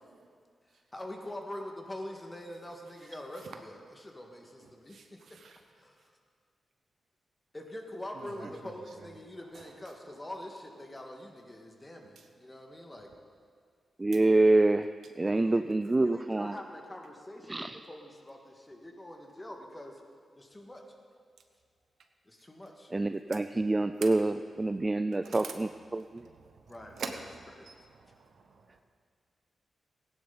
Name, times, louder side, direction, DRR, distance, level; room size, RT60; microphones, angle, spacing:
voice 1, 0.9-5.2 5.8-6.1 7.5-13.1 15.2-19.9 20.4-20.8 22.3-22.9 26.7-27.2 27.6-27.7, left 1 dB, 25° left, 2 dB, 1.9 m, -44 dB
voice 2, 4.9-5.6 8.1-8.8 24.0-24.1 25.2-25.6 26.2-26.6 26.9-27.7 28.0-28.6, right 5 dB, 75° right, 5 dB, 1.0 m, -44 dB
voice 3, 14.0-14.9 15.2-16.5 17.5-17.8 22.9-26.2, right 2 dB, 30° right, 10 dB, 0.4 m, -26 dB
15.5 x 10.5 x 4.1 m, 2.1 s
cardioid pair, 50°, 0 cm